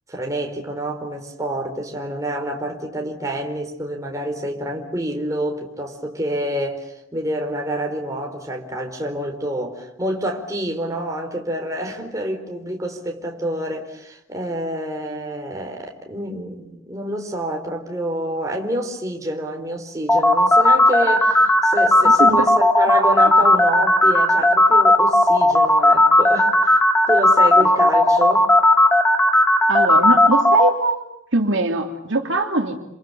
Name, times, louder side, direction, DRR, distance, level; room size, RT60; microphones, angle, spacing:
voice 1, 0.1-26.8 27.1-28.5, right 1 dB, 15° right, 4.4 m, -28 dB
sound 1, 20.1-30.7, left 1 dB, 10° left, 1.9 m, -14 dB
voice 2, 22.0-22.5 23.2-23.5 29.7-31.0 31.3-32.8, right 2 dB, 70° right, 3.0 m, -22 dB
29.5 x 27.5 x 7.2 m
head